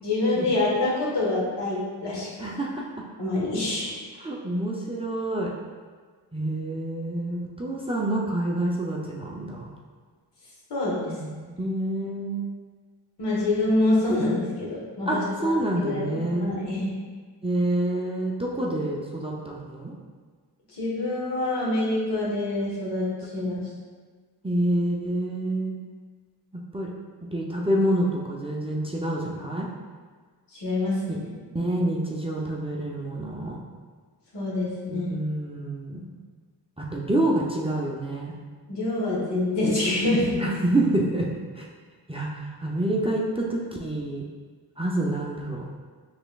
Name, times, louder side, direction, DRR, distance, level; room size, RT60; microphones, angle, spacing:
voice 1, 0.0-2.5 3.2-3.9 10.7-11.1 13.2-16.9 20.7-23.6 30.5-31.3 34.3-35.1 38.7-40.4, left 2 dB, 70° left, -5 dB, 1.4 m, -26 dB
voice 2, 2.4-2.9 4.2-5.5 6.3-9.7 11.1-12.5 15.1-16.5 17.4-19.9 23.4-23.5 24.4-25.7 26.7-26.9 27.2-29.7 31.1-31.2 31.5-33.6 34.9-36.1 36.8-38.3 40.4-41.3 41.5-41.7 42.1-44.2 44.8-45.6, right 1 dB, 15° right, -4 dB, 0.4 m, -27 dB
4.9 x 3.3 x 2.3 m, 1.5 s
cardioid pair, 70°, 44 cm